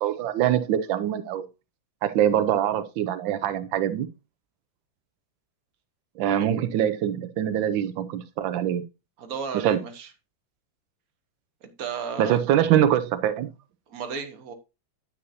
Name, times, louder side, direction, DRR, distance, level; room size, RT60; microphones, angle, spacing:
voice 1, 0.0-1.5 2.0-4.1 6.2-8.8 9.5-9.8 12.2-13.5, right 10 dB, 85° right, 1.4 m, -24 dB
voice 2, 9.2-10.1 11.6-12.4 13.9-14.5, right 6 dB, 50° right, 1.6 m, -34 dB
9.5 x 8.2 x 2.7 m
omnidirectional pair, 2.0 m